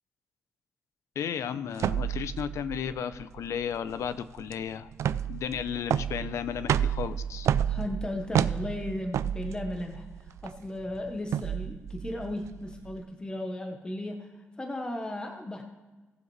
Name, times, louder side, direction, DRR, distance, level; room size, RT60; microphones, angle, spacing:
voice 1, 1.2-4.9 5.3-7.5, left 8 dB, 85° left, 13 dB, 0.6 m, -34 dB
sound 1, 1.8-13.0, right 9 dB, 80° right, 0.3 m, -31 dB
voice 2, 7.6-14.3 14.6-15.6, left 1 dB, 15° left, 3 dB, 1.1 m, -36 dB
18.0 x 7.3 x 3.2 m, 1.3 s
cardioid pair, 115°, 5 cm